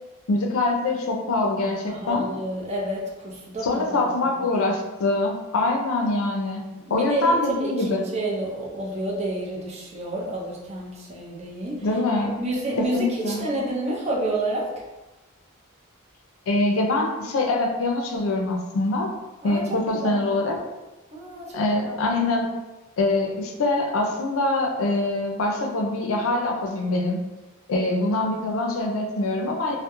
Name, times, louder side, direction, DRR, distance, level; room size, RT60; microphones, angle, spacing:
voice 1, 0.3-2.3 3.6-6.6 6.9-8.0 11.8-12.3 12.8-13.5 16.5-19.1 19.4-20.6 21.5-22.5 23.0-27.2 27.7-29.8, left 2 dB, 70° left, 2 dB, 0.4 m, -24 dB
voice 2, 1.8-3.8 4.2-4.3 6.9-11.8 12.1-13.1 13.4-14.7 19.4-19.6 19.9-20.2 21.1-21.9, right 1 dB, 30° right, -4 dB, 0.5 m, -29 dB
2.2 x 2.0 x 2.9 m, 1.1 s
head